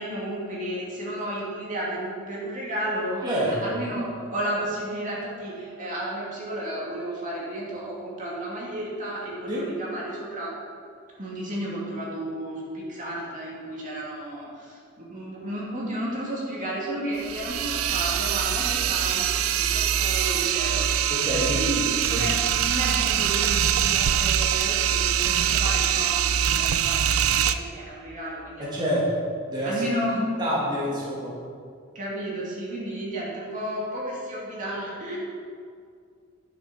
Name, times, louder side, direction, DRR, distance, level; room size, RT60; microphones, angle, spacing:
voice 1, 0.0-10.5 11.2-21.1 21.4-29.0 29.6-30.3 31.9-35.2, right 1 dB, 40° right, -5 dB, 2.5 m, -32 dB
voice 2, 3.2-3.7 9.5-9.6 21.1-21.6 22.1-22.2 28.6-29.1 29.5-29.8 30.4-31.3, equal, 20° right, -7 dB, 2.4 m, -27 dB
sound 1, 17.2-27.5, right 9 dB, 90° right, 0.5 m, -23 dB
10.5 x 6.8 x 6.2 m, 2.2 s
head